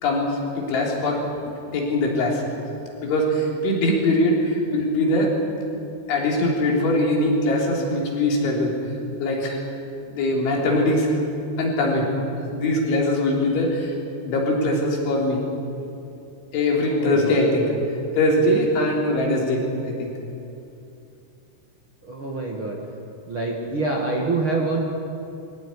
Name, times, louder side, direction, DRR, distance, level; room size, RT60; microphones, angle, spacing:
voice 1, 0.0-1.2 1.7-2.4 3.0-5.3 6.1-8.7 9.2-9.6 10.1-11.2 11.6-12.1 12.5-14.0 14.2-15.4 16.5-17.6 18.2-20.1, left 1 dB, 85° left, -1 dB, 6.1 m, -22 dB
voice 2, 16.8-17.9 22.0-22.8 23.3-24.9, right 3 dB, 40° right, -1 dB, 2.0 m, -26 dB
24.0 x 17.0 x 10.0 m, 2.8 s
omnidirectional pair, 5.3 m